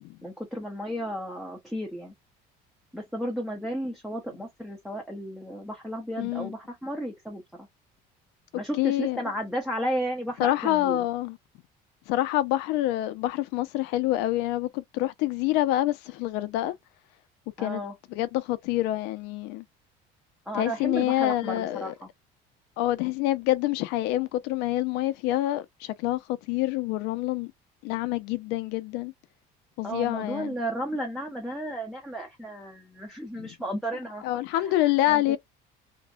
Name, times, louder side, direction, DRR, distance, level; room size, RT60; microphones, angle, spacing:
voice 1, 0.2-2.1 2.9-7.7 8.5-11.1 17.6-17.9 20.5-22.1 29.8-34.2 34.5-35.4, equal, ahead, 0.6 m, -33 dB
voice 2, 6.2-6.5 8.8-9.2 10.4-11.4 12.1-16.7 17.6-17.8 18.1-19.6 20.5-21.9 22.8-27.5 27.8-29.1 29.8-30.5 33.4-33.5 34.2-35.4, left 15 dB, 85° left, 0.5 m, -27 dB
2.6 x 2.1 x 2.3 m
cardioid pair, 160°, 17 cm